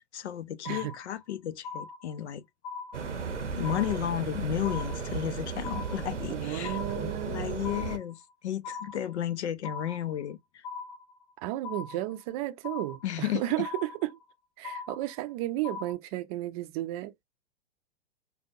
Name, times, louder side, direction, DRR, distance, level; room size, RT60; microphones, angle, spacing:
voice 1, 0.0-2.4 3.5-10.6 13.0-13.4, left 11 dB, 70° left, 0.6 m, -33 dB
sound 1, 0.6-1.3 1.6-2.3 2.6-3.3 3.6-4.3 4.6-5.3 5.6-6.3 6.6-7.3 7.6-8.3 8.6-9.3 9.6-10.3 10.6-11.3 11.6-12.3 12.6-13.3 13.6-14.3 14.6-15.3 15.6-15.9, left 5 dB, 10° left, 1.4 m, -40 dB
sound 2, 2.9-8.0, right 5 dB, 90° right, 0.8 m, -35 dB
voice 2, 6.3-7.6 11.4-14.2 14.6-17.1, right 16 dB, 35° right, 0.5 m, -33 dB
5.0 x 2.2 x 2.6 m
figure-of-eight pair, 105°, 35 cm